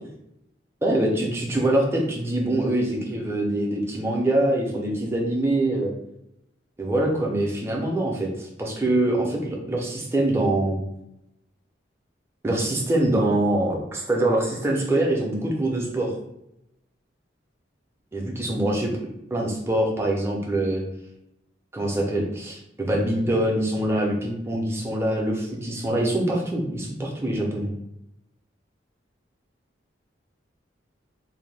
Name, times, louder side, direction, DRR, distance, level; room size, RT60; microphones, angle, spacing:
voice 1, 0.8-5.9 6.8-10.8 12.4-16.1 18.1-18.9 19.3-20.8 21.7-27.7, right 1 dB, 15° right, -1 dB, 0.4 m, -24 dB
2.5 x 2.1 x 3.2 m, 0.83 s
head